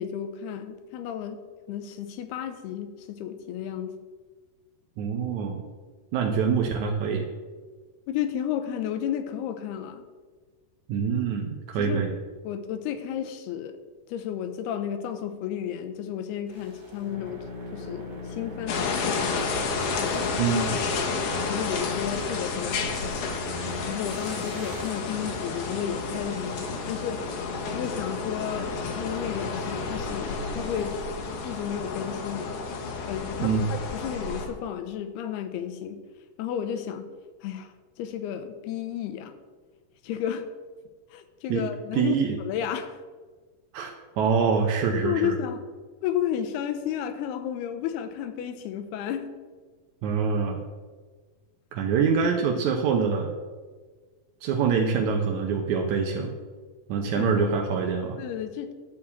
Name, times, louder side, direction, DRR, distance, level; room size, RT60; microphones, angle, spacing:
voice 1, 0.0-1.4 1.7-3.9 8.1-10.0 11.8-12.0 12.4-13.7 14.1-17.4 17.7-19.7 20.0-20.2 20.8-21.2 21.5-23.2 23.9-27.2 27.7-31.0 31.4-32.6 33.1-36.0 36.4-37.1 37.4-37.7 38.0-39.4 40.0-40.5 41.1-42.2 42.5-43.0 45.0-45.6 46.0-49.3 57.2-57.5 58.2-58.7, left 9 dB, 85° left, 9 dB, 2.8 m, -32 dB
voice 2, 5.0-5.6 6.1-7.3 10.9-12.1 20.4-20.7 33.4-33.7 41.5-41.6 41.9-42.4 43.7-45.4 50.0-50.6 51.7-53.3 54.4-56.3 56.9-58.2, right 6 dB, 75° right, 2 dB, 1.7 m, -25 dB
sound 1, 16.5-31.0, left 3 dB, 35° right, 0.8 m, -39 dB
sound 2, 18.7-34.5, left 4 dB, 60° left, 2.5 m, -31 dB
12.0 x 4.8 x 8.5 m, 1.4 s
omnidirectional pair, 4.5 m